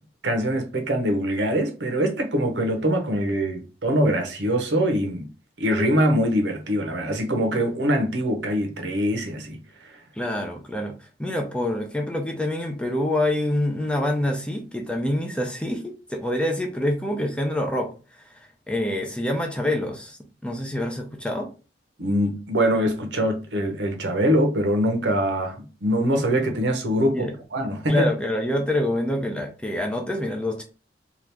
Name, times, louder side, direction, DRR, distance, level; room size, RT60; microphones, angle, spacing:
voice 1, 0.2-5.3 5.6-9.6 22.0-28.1, equal, 80° right, 0.8 m, -23 dB
voice 2, 10.2-18.2 18.7-21.5 27.1-27.4 27.9-30.6, left 1 dB, 5° left, 0.5 m, -26 dB
2.8 x 2.4 x 3.3 m
head